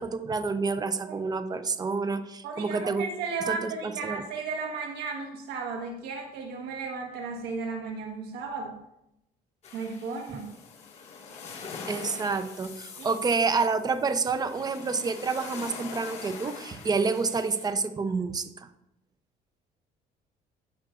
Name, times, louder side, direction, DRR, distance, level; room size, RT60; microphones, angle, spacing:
voice 1, 0.0-3.0 3.5-4.2 11.9-18.7, right 4 dB, 25° right, 10 dB, 0.6 m, -28 dB
voice 2, 2.4-8.8 9.7-10.6 13.0-13.2, right 4 dB, 80° right, 2 dB, 1.4 m, -35 dB
sound 1, 9.6-17.7, left 5 dB, 40° left, 1.9 m, -43 dB
15.0 x 5.9 x 2.5 m, 0.84 s
cardioid pair, 110°, 17 cm